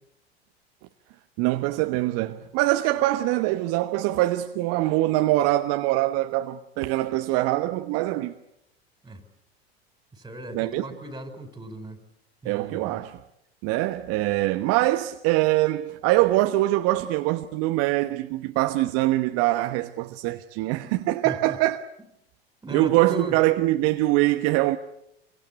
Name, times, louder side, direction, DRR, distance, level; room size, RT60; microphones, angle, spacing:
voice 1, 1.4-8.3 10.5-10.8 12.4-13.2 13.6-21.8 22.7-24.8, right 17 dB, 50° right, 1.2 m, -23 dB
voice 2, 10.1-12.0 12.4-13.0 20.8-21.6 22.6-23.3, right 1 dB, 10° right, 5.2 m, -38 dB
26.0 x 24.0 x 8.4 m
figure-of-eight pair, 85°, 32 cm